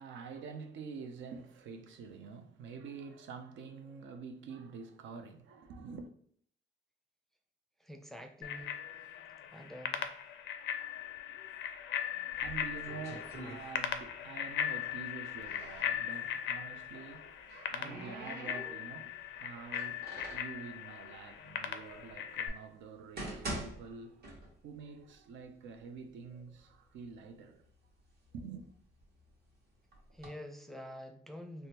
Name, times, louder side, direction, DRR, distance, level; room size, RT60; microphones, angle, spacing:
voice 1, 0.0-6.1 12.4-27.6 28.3-28.7, right 5 dB, 75° right, 0.5 m, -47 dB
voice 2, 7.8-8.8 9.5-10.1 30.1-31.7, equal, ahead, 0.4 m, -47 dB
Bicycle bell, 8.4-22.5, left 9 dB, 70° left, 0.4 m, -39 dB
sound 1, 12.3-14.2 14.5-15.9 17.0-19.1 19.6-20.6 21.3-21.4 22.1-22.2 22.8-24.8 25.1-25.2 25.9-26.0 26.4-27.1 27.6-29.3 29.9-30.3, right 1 dB, 55° right, 1.2 m, -45 dB
3.4 x 2.1 x 2.8 m
cardioid pair, 90°, 20 cm